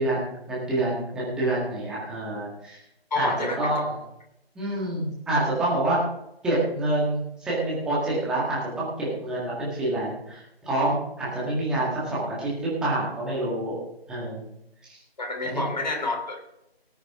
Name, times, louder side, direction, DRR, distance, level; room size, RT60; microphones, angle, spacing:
voice 1, 0.0-2.8 3.1-3.3 3.6-3.9 4.5-6.0 6.4-13.8 14.1-14.5 14.8-15.0 15.4-15.6, right 2 dB, ahead, -8 dB, 1.8 m, -27 dB
voice 2, 3.1-3.7 15.2-16.5, left 2 dB, 45° left, 2 dB, 3.4 m, -29 dB
18.5 x 9.0 x 3.6 m, 0.81 s
figure-of-eight pair, 160°, 31 cm